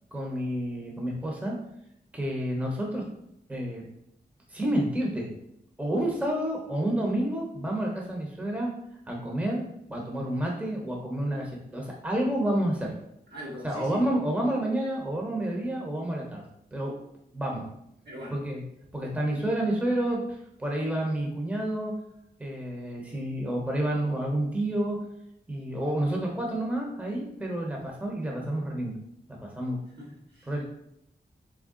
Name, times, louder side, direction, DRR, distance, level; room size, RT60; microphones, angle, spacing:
voice 1, 0.1-1.6 2.1-3.0 3.5-3.8 4.5-5.3 5.8-8.7 9.1-12.9 13.6-16.4 16.7-16.9 17.3-17.6 18.3-18.6 18.9-21.9 22.4-25.0 25.5-29.0 29.3-29.8 30.5-30.6, right 1 dB, 10° right, -1 dB, 0.8 m, -29 dB
voice 2, 13.3-14.1 18.1-18.5 30.0-30.6, equal, 70° right, -5 dB, 1.6 m, -41 dB
3.6 x 3.4 x 3.7 m, 0.76 s
wide cardioid pair, 105°, 17 cm